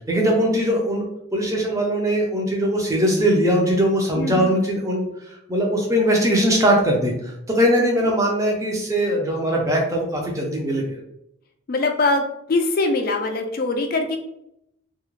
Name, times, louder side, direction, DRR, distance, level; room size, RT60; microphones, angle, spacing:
voice 1, 0.1-1.0 1.3-10.8, equal, 15° right, -1 dB, 0.5 m, -21 dB
voice 2, 4.2-4.5 7.8-8.0 11.7-12.2 12.5-14.2, left 2 dB, 45° left, 4 dB, 0.3 m, -22 dB
2.3 x 2.1 x 3.0 m, 0.80 s
head